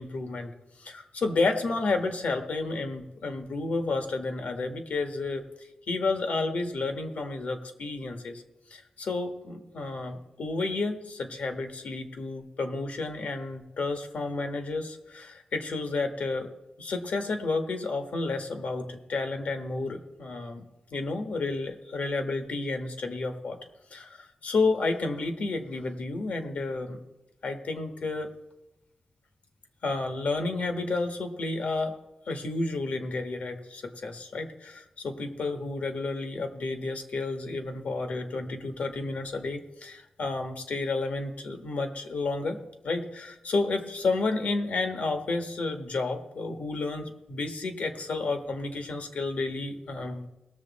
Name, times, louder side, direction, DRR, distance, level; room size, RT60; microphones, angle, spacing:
voice 1, 0.0-5.4 5.9-8.4 8.7-16.5 16.8-23.6 23.9-27.0 27.4-28.3 29.8-31.9 32.3-50.3, left 3 dB, 75° left, 6 dB, 1.5 m, -31 dB
19.0 x 7.0 x 4.2 m, 0.98 s
wide cardioid pair, 160°, 2 cm